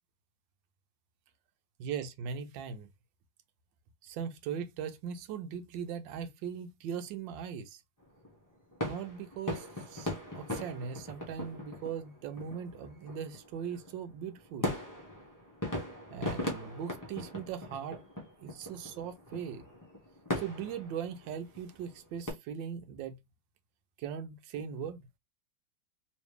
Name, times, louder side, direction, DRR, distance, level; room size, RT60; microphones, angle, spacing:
voice 1, 1.8-2.9 4.0-7.8 8.8-14.7 16.1-18.0 18.4-19.6 20.4-23.2 24.0-25.1, right 7 dB, 80° right, 1.3 m, -39 dB
sound 1, 8.0-22.3, left 1 dB, 20° left, 0.6 m, -40 dB
3.1 x 3.1 x 3.2 m
omnidirectional pair, 2.1 m